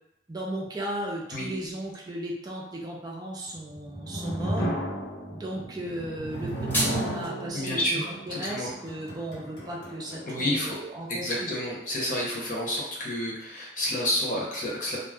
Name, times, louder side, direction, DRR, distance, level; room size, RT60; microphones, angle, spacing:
voice 1, 0.3-4.7 5.3-6.5 6.8-11.5, right 1 dB, 25° right, -3 dB, 0.4 m, -36 dB
sound 1, 3.6-10.8, right 1 dB, 90° left, 1.1 m, -34 dB
sound 2, 6.3-7.3, equal, 10° left, 0.8 m, -31 dB
voice 2, 7.5-8.0 8.3-8.7 10.3-10.8 11.1-15.0, left 1 dB, 50° left, -5 dB, 0.9 m, -29 dB
2.4 x 2.2 x 3.4 m, 0.85 s
head